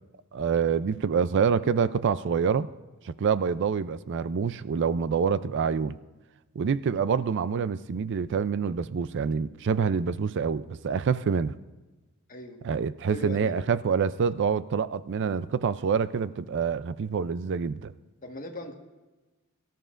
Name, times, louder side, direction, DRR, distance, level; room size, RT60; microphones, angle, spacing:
voice 1, 0.3-2.7 3.0-6.0 6.6-11.5 12.6-17.9, right 6 dB, 55° right, 15 dB, 0.4 m, -26 dB
voice 2, 13.1-13.6 18.2-18.7, left 2 dB, 40° left, 2 dB, 1.5 m, -38 dB
23.0 x 13.5 x 2.5 m, 1.2 s
head